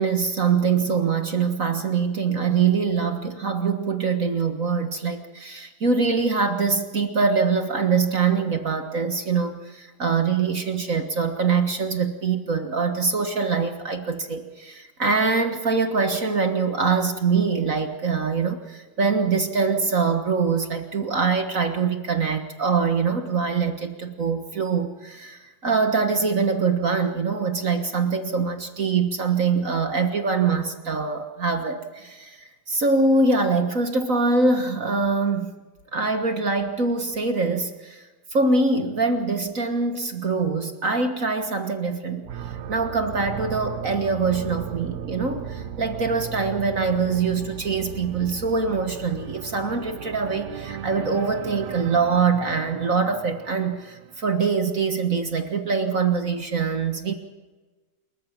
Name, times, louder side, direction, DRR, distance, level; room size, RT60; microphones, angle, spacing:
voice 1, 0.0-32.4 32.7-35.5 35.9-38.0 38.3-42.3 42.7-57.1, right 4 dB, 40° right, 7 dB, 1.1 m, -24 dB
sound 1, 42.2-54.2, right 9 dB, 75° right, 2.2 m, -36 dB
28.0 x 14.5 x 7.3 m, 1.2 s
omnidirectional pair, 3.5 m